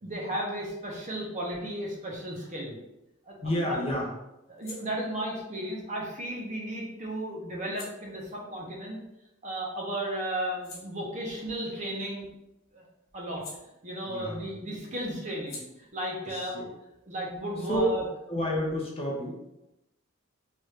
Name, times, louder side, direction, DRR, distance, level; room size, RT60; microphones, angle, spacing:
voice 1, 0.0-2.8 3.3-3.8 4.5-9.0 9.4-12.3 12.7-12.8 13.1-13.4 13.8-16.7 17.0-18.0, right 1 dB, 35° right, -3 dB, 0.7 m, -34 dB
voice 2, 3.4-4.1 14.1-14.5 16.2-16.7 17.7-18.0 18.3-19.3, equal, 30° left, -2 dB, 0.6 m, -29 dB
sound 1, 4.4-9.7 10.1-14.4 14.6-18.0, left 3 dB, 80° left, 1.0 m, -53 dB
3.2 x 2.5 x 3.2 m, 0.90 s
head